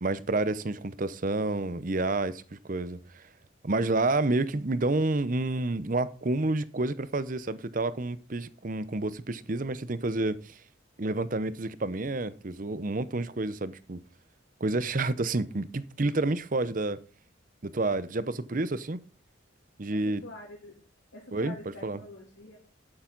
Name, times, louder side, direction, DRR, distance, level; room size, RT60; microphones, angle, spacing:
voice 1, 0.0-3.2 3.6-10.6 11.0-14.0 14.6-17.0 17.6-19.0 19.8-20.2 21.3-21.5 21.8-22.0, right 2 dB, 40° right, 0.7 m, -29 dB
voice 2, 19.9-20.8 21.1-22.6, left 2 dB, 70° left, 3.0 m, -46 dB
12.0 x 8.8 x 3.9 m
head